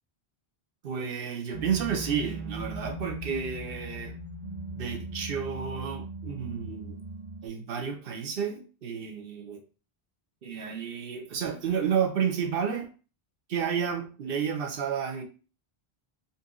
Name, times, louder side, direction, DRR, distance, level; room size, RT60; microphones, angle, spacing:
voice 1, 0.8-4.2 4.7-7.0 7.4-9.6 10.4-12.9 13.5-15.2, right 7 dB, 65° right, 1.0 m, -31 dB
sound 1, 1.5-7.5, right 2 dB, 35° right, 0.5 m, -39 dB
4.3 x 2.7 x 3.6 m
omnidirectional pair, 1.0 m